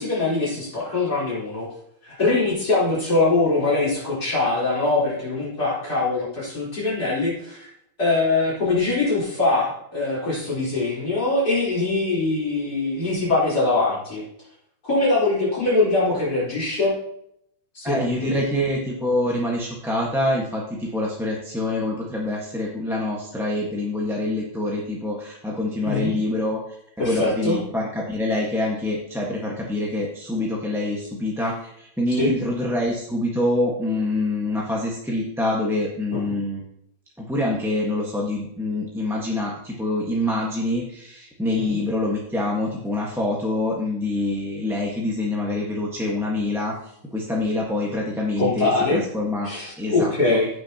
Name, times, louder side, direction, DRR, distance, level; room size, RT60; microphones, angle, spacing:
voice 1, 0.0-1.7 2.0-7.7 8.0-14.2 14.8-16.9 17.7-18.5 25.8-26.2 27.0-27.6 32.2-32.3 36.1-36.3 41.6-41.8 48.4-49.0 49.4-50.5, left 3 dB, 50° left, -8 dB, 4.5 m, -23 dB
voice 2, 17.8-26.6 27.0-36.6 37.2-46.7 47.1-49.5 49.8-50.4, left 1 dB, ahead, -3 dB, 1.1 m, -25 dB
16.0 x 6.4 x 2.9 m, 0.73 s
omnidirectional pair, 2.1 m